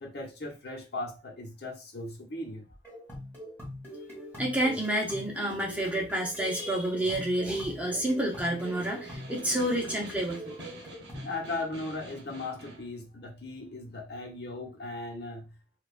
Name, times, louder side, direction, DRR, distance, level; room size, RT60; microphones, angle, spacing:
voice 1, 0.0-2.7 11.2-15.6, left 2 dB, 65° left, 1.1 m, -38 dB
sound 1, 2.8-11.3, equal, 10° left, 1.9 m, -43 dB
voice 2, 4.4-10.6, right 1 dB, 10° right, 0.8 m, -29 dB
Snare drum, 7.9-12.9, right 1 dB, 80° right, 0.9 m, -47 dB
4.6 x 2.5 x 2.5 m
head